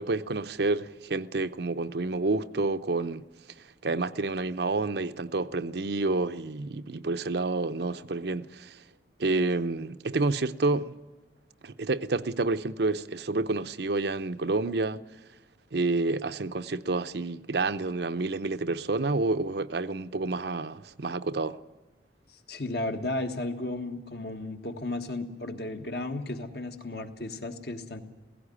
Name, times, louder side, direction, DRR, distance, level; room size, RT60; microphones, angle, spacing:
voice 1, 0.0-3.3 3.6-8.8 9.2-11.0 11.6-15.0 15.7-21.6, right 3 dB, 65° right, 0.7 m, -29 dB
voice 2, 22.5-28.0, left 2 dB, 60° left, 1.6 m, -34 dB
16.5 x 16.0 x 9.9 m
head